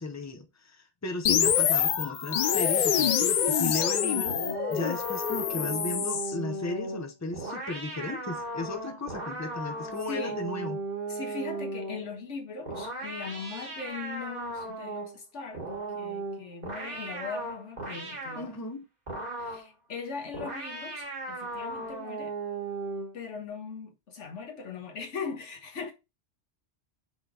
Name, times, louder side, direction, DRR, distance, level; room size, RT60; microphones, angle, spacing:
voice 1, 0.0-4.4 4.7-10.8 18.4-18.9, left 2 dB, 15° left, 0.8 m, -35 dB
sound 1, 1.3-6.3, left 9 dB, 55° left, 0.5 m, -26 dB
sound 2, 4.3-12.1 12.7-15.2 15.5-18.5 19.1-19.7 20.3-23.2, right 2 dB, 40° right, 1.6 m, -36 dB
voice 2, 10.1-10.4 11.1-15.7 15.9-18.6 19.4-22.4 23.1-25.9, left 5 dB, 85° left, 1.6 m, -39 dB
5.0 x 3.9 x 4.8 m
omnidirectional pair, 1.2 m